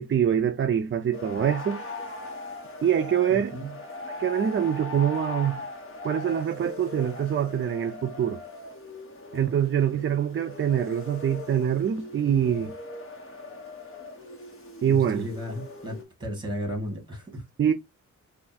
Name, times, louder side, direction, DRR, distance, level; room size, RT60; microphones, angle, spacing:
voice 1, 0.0-1.8 2.8-3.5 4.2-5.6 6.0-8.4 9.3-12.7 14.8-15.3 17.6-17.7, right 9 dB, 40° right, 0.5 m, -24 dB
sound 1, 1.1-16.0, left 3 dB, 45° left, 1.4 m, -40 dB
voice 2, 3.3-3.8 14.9-17.4, equal, 15° right, 1.9 m, -35 dB
3.4 x 2.6 x 4.1 m
wide cardioid pair, 130°, 30 cm